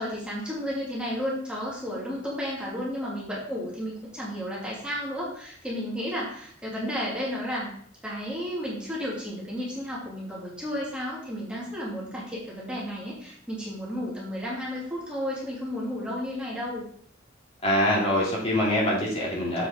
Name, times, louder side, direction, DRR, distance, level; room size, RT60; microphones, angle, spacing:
voice 1, 0.0-7.7 8.0-16.8, equal, 5° right, -6 dB, 2.8 m, -32 dB
voice 2, 17.6-19.7, left 1 dB, 35° left, -5 dB, 3.0 m, -24 dB
7.7 x 7.5 x 3.8 m, 0.62 s
head